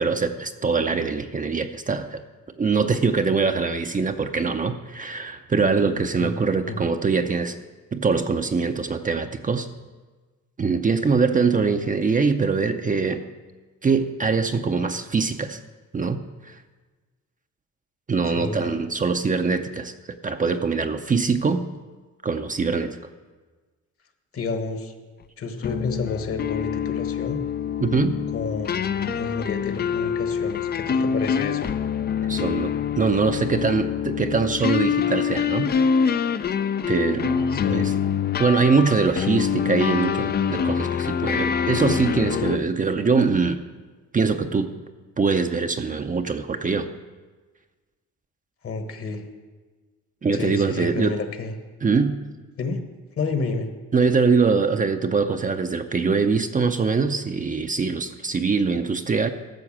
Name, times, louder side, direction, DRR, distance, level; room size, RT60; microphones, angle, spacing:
voice 1, 0.0-2.2 2.6-7.5 7.9-9.7 10.6-13.2 13.8-15.6 15.9-16.6 18.1-19.9 20.2-21.7 22.2-23.0 27.8-28.2 32.2-35.7 36.3-36.4 36.9-37.9 38.4-43.6 44.1-44.7 45.2-46.9 50.2-51.2 51.8-52.2 53.9-59.3, right 4 dB, 25° right, 6 dB, 0.6 m, -23 dB
voice 2, 18.3-18.8 24.3-24.9 25.4-27.4 28.3-31.7 37.5-38.0 48.6-49.2 50.3-51.5 52.6-52.8 53.2-53.7, left 4 dB, 50° left, 7 dB, 1.4 m, -30 dB
sound 1, 25.6-42.6, left 7 dB, 35° left, 0.4 m, -25 dB
13.0 x 5.8 x 7.4 m, 1.3 s
cardioid pair, 90°, 30 cm